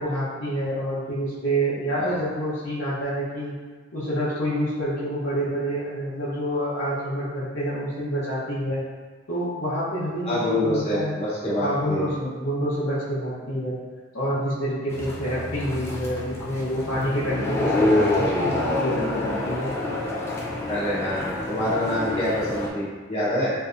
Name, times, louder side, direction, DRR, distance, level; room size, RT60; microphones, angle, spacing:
voice 1, 0.0-3.5 3.9-8.8 9.3-11.2 11.6-13.7 14.1-19.7, equal, 85° left, -11 dB, 0.8 m, -27 dB
voice 2, 10.3-12.0 20.7-23.5, left 1 dB, 35° left, -9 dB, 1.0 m, -26 dB
sound 1, 14.9-22.7, left 2 dB, 15° left, 0.4 m, -27 dB
3.4 x 2.6 x 2.5 m, 1.4 s
head